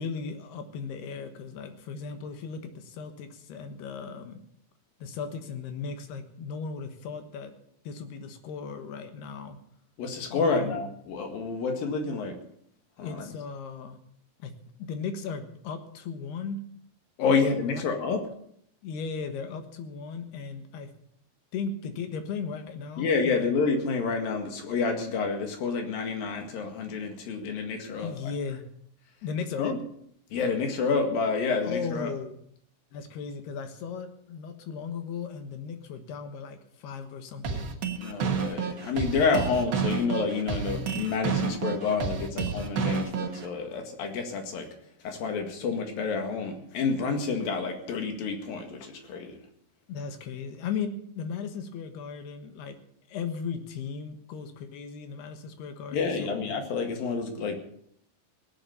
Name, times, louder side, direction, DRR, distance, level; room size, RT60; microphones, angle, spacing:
voice 1, 0.0-4.4 5.0-7.5 7.8-9.6 10.3-10.8 13.0-14.0 14.4-14.5 14.8-16.6 17.3-17.8 18.8-20.9 21.5-23.5 28.0-28.6 29.2-29.7 31.6-32.3 32.9-37.7 49.9-52.8 53.1-56.4, left 5 dB, 85° left, 7 dB, 3.4 m, -36 dB
voice 2, 10.0-12.4 13.0-13.3 17.2-18.2 23.0-28.3 29.6-29.8 30.3-32.1 38.0-44.7 45.0-49.4 55.9-57.6, left 4 dB, 65° left, 5 dB, 3.5 m, -29 dB
sound 1, 37.4-43.5, right 6 dB, 55° right, 1.3 m, -30 dB
18.5 x 8.7 x 6.9 m, 0.67 s
omnidirectional pair, 4.5 m